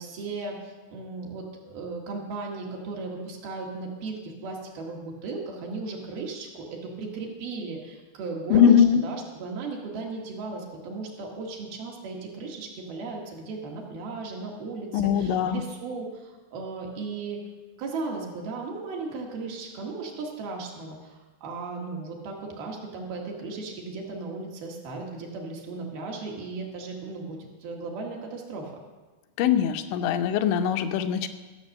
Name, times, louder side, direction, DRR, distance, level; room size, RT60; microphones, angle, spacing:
voice 1, 0.0-17.4 17.8-28.7, right 3 dB, 65° right, -1 dB, 3.1 m, -36 dB
voice 2, 8.5-9.0 14.9-15.6 29.4-31.3, left 8 dB, 90° left, 8 dB, 3.1 m, -21 dB
14.5 x 7.5 x 6.4 m, 1.3 s
omnidirectional pair, 5.1 m